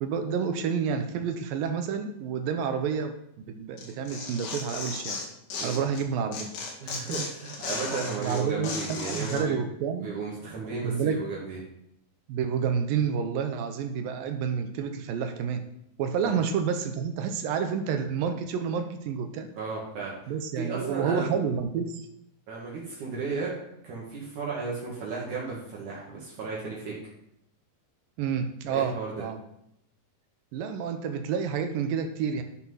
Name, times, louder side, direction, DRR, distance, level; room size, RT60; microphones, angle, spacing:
voice 1, 0.0-3.1 3.5-5.2 5.6-6.5 8.2-10.1 10.8-11.2 12.3-15.6 16.0-19.5 20.3-22.1 28.2-29.4 30.5-32.4, right 6 dB, 80° right, 7 dB, 2.5 m, -29 dB
Tearing, 3.8-6.0 6.3-9.4, left 4 dB, 85° left, 3.8 m, -35 dB
voice 2, 6.8-9.6 10.0-11.6 16.2-16.4 19.6-20.1 20.6-21.3 22.5-23.5 23.8-26.9 28.7-29.1, right 4 dB, 60° right, -4 dB, 3.2 m, -34 dB
12.0 x 6.1 x 5.7 m, 0.78 s
omnidirectional pair, 4.1 m